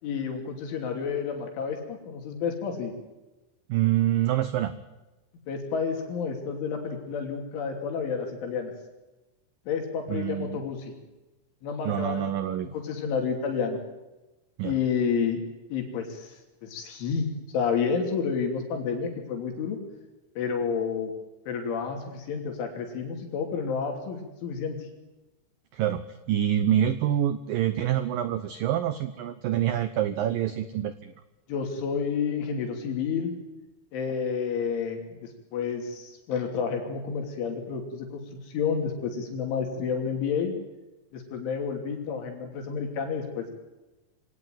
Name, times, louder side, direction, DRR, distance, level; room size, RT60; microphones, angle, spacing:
voice 1, 0.0-3.0 5.5-8.7 9.7-10.9 11.6-12.3 12.6-13.8 14.6-15.4 15.7-17.3 17.5-19.8 20.4-21.1 21.5-24.8 31.5-33.4 33.9-40.6 41.1-43.5, left 6 dB, 80° left, 3 dB, 5.4 m, -30 dB
voice 2, 3.7-4.7 10.1-10.6 11.9-12.7 14.6-14.7 25.7-31.1, right 11 dB, 85° right, 12 dB, 2.0 m, -26 dB
25.0 x 18.0 x 9.3 m, 1.1 s
omnidirectional pair, 5.4 m